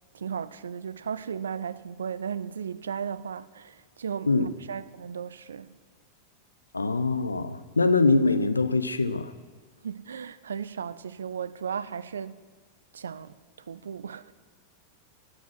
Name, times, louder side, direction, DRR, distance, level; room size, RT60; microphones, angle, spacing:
voice 1, 0.1-5.8 9.8-12.4 12.9-14.3, right 7 dB, 70° right, 0.4 m, -35 dB
voice 2, 6.7-9.3, left 3 dB, 80° left, 0.6 m, -23 dB
11.0 x 9.5 x 6.1 m
figure-of-eight pair, 90°, 0 cm